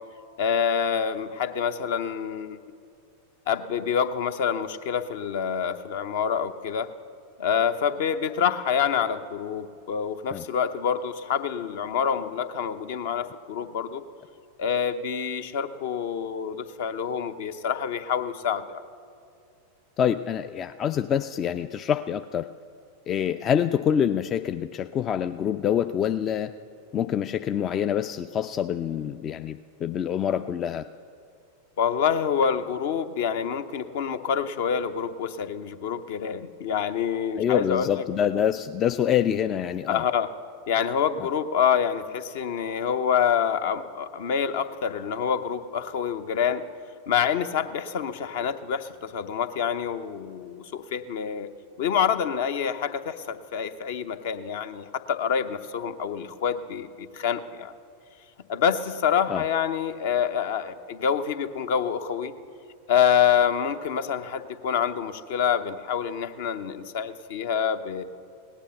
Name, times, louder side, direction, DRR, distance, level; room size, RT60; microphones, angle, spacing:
voice 1, 0.4-2.6 3.5-6.9 7.4-14.0 14.6-18.8 31.8-38.0 39.9-40.3 40.7-46.6 47.1-51.5 51.8-57.7 58.5-62.3 62.9-68.0, left 7 dB, 55° left, 11 dB, 0.7 m, -27 dB
voice 2, 20.0-22.5 23.1-26.5 26.9-30.8 37.4-40.0 59.3-59.4, left 9 dB, 30° left, 10 dB, 0.4 m, -26 dB
17.5 x 10.0 x 6.8 m, 2.4 s
figure-of-eight pair, 90°, 0 cm